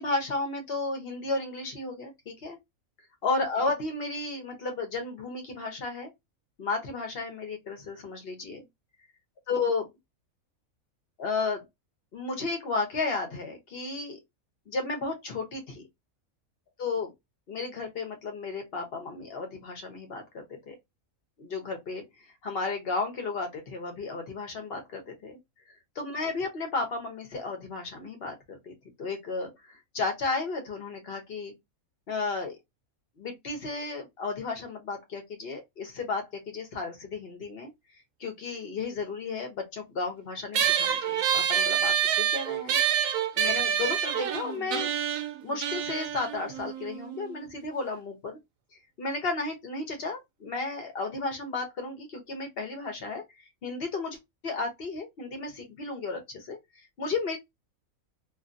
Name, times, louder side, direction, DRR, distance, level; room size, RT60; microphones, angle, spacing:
voice 1, 0.0-2.6 3.2-6.1 6.6-8.6 9.5-9.9 11.2-11.6 12.1-14.2 14.7-15.8 16.8-17.1 17.5-20.8 21.4-22.0 22.4-25.4 25.9-28.7 29.0-31.5 32.1-32.6 33.2-37.7 38.2-42.8 43.4-44.9 45.4-48.4 49.0-56.6 57.0-57.4, left 3 dB, 50° left, 1.1 m, -33 dB
sound 1, 40.5-47.3, right 9 dB, 75° right, 1.0 m, -27 dB
2.7 x 2.6 x 2.5 m
omnidirectional pair, 1.5 m